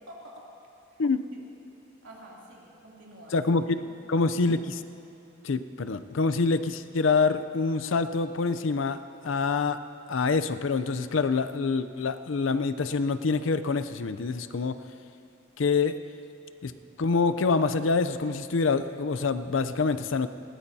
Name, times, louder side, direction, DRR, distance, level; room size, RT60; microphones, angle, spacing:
voice 1, 0.1-0.4 0.9-1.0 1.3-1.4 2.0-4.6, equal, 85° right, -4 dB, 2.9 m, -49 dB
voice 2, 3.3-3.8 4.1-4.8 5.4-9.8 10.1-14.8 15.6-16.0 16.6-16.7 17.0-20.3, left 4 dB, 80° left, 12 dB, 0.5 m, -26 dB
20.5 x 17.5 x 2.8 m, 3.0 s
head